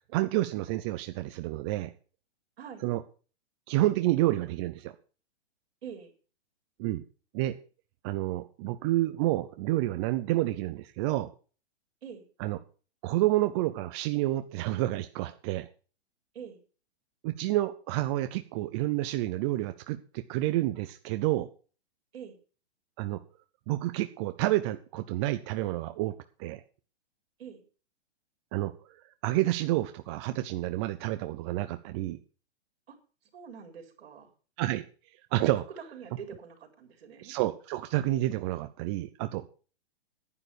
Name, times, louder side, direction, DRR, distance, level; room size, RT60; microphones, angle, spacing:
voice 1, 0.1-1.9 2.8-3.0 3.7-4.9 6.8-7.0 7.3-7.6 8.0-11.3 12.4-12.6 13.0-15.7 17.2-21.5 23.0-23.2 23.7-26.1 26.4-26.6 28.5-28.7 29.2-32.2 34.6-34.9 35.3-35.7 37.2-39.4, right 16 dB, 25° right, 9 dB, 0.6 m, -29 dB
voice 2, 5.8-6.1 12.0-12.3 16.3-16.6 22.1-22.4 27.4-27.6 32.9-33.0 33.3-34.3 35.9-37.3, right 7 dB, 60° right, 4 dB, 4.2 m, -45 dB
11.0 x 9.2 x 6.9 m, 0.37 s
hypercardioid pair, 145°, 33 cm